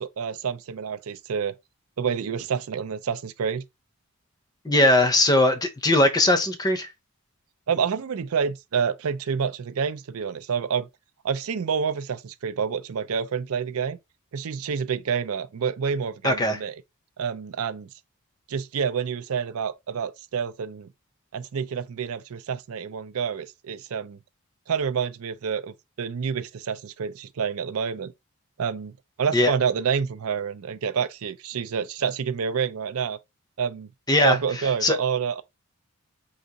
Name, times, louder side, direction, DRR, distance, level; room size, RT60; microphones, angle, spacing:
voice 1, 0.0-1.5 2.0-3.6 7.7-10.9 11.2-14.0 14.3-16.7 17.2-17.9 18.5-20.9 21.3-24.2 24.7-28.1 28.6-28.9 29.2-33.2 33.6-33.9 34.2-35.4, right 6 dB, 75° right, 0.5 m, -28 dB
voice 2, 4.6-6.9 16.2-16.6 29.3-29.5 34.1-34.4 34.8-34.9, left 1 dB, 15° left, 0.6 m, -20 dB
4.8 x 2.5 x 3.9 m
head